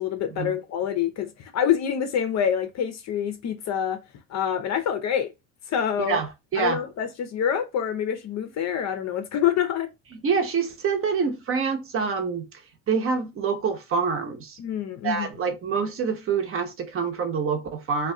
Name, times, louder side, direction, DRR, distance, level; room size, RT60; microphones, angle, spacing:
voice 1, 0.0-4.0 4.3-5.3 5.7-6.2 6.6-9.9 14.6-15.3, left 9 dB, 40° left, 0.6 m, -26 dB
voice 2, 6.0-6.8 10.2-12.5 12.9-14.6 15.0-18.1, right 5 dB, 35° right, 0.9 m, -26 dB
2.3 x 2.3 x 3.6 m
hypercardioid pair, 85°, 40 cm